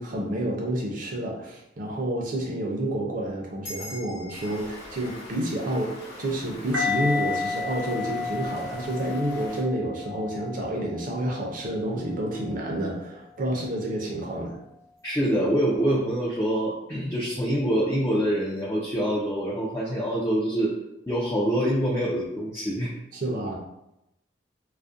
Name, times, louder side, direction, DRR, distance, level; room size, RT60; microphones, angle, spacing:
voice 1, 0.0-14.6 23.1-23.6, right 1 dB, 45° right, -1 dB, 0.5 m, -29 dB
sound 1, 3.6-8.4, left 1 dB, 85° left, 0.9 m, -46 dB
Stream, 4.3-9.6, left 1 dB, 55° left, 0.7 m, -44 dB
sound 2, 6.7-11.7 12.3-12.5, left 4 dB, 85° right, 0.7 m, -32 dB
voice 2, 15.0-20.7 21.1-22.9, equal, 15° left, -6 dB, 0.3 m, -25 dB
2.4 x 2.0 x 2.5 m, 0.87 s
head